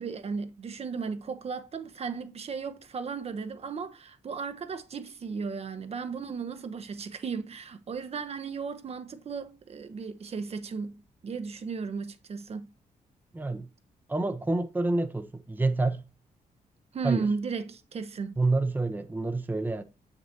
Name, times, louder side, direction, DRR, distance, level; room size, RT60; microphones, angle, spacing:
voice 1, 0.0-10.9 11.2-12.7 16.9-18.3, right 5 dB, 45° right, 0.8 m, -35 dB
voice 2, 13.3-13.7 14.1-16.1 17.0-17.3 18.4-19.8, right 2 dB, 15° right, 0.7 m, -28 dB
6.8 x 6.1 x 2.7 m
cardioid pair, 105°, 15 cm